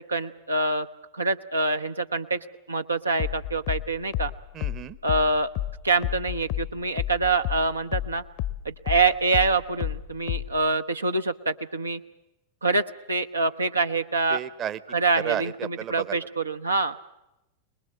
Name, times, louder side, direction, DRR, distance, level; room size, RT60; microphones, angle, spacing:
voice 1, 0.1-0.9 1.1-2.4 2.7-4.3 5.0-5.5 5.8-8.2 8.6-12.0 12.6-14.4 14.9-16.9, right 3 dB, 80° right, 7 dB, 0.9 m, -25 dB
sound 1, 3.2-8.1 8.4-10.6, left 13 dB, 45° left, 0.9 m, -30 dB
voice 2, 4.5-5.0 14.3-14.8 15.2-16.3, right 9 dB, 30° right, 16 dB, 0.9 m, -33 dB
24.0 x 20.5 x 7.8 m, 0.91 s
figure-of-eight pair, 90°, 0 cm